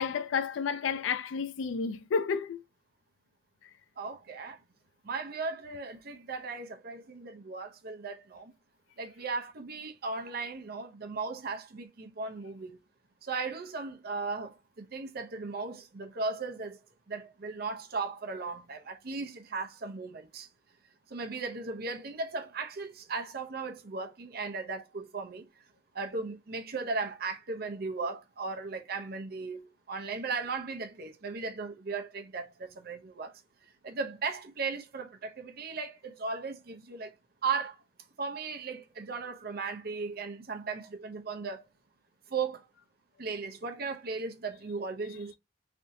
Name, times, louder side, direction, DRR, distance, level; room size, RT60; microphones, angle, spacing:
voice 1, 0.0-2.6, left 6 dB, 85° left, 0.4 m, -31 dB
voice 2, 4.0-4.6 5.0-8.5 9.0-12.8 13.2-16.8 17.1-20.5 21.1-25.5 25.9-33.3 33.8-37.1 37.4-37.8 38.2-41.7 42.3-42.6 43.2-45.4, right 4 dB, 55° right, 0.6 m, -37 dB
3.4 x 2.7 x 2.6 m
head